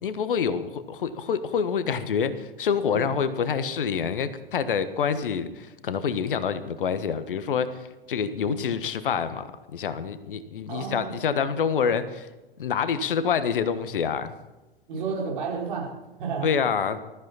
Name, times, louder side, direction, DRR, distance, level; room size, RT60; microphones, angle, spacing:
voice 1, 0.0-12.3 12.6-14.3 16.4-17.0, left 6 dB, 60° left, 12 dB, 1.3 m, -27 dB
voice 2, 10.7-11.3 14.9-16.5, right 5 dB, 55° right, -1 dB, 4.8 m, -32 dB
20.5 x 14.0 x 4.2 m, 1.1 s
figure-of-eight pair, 100°, 30 cm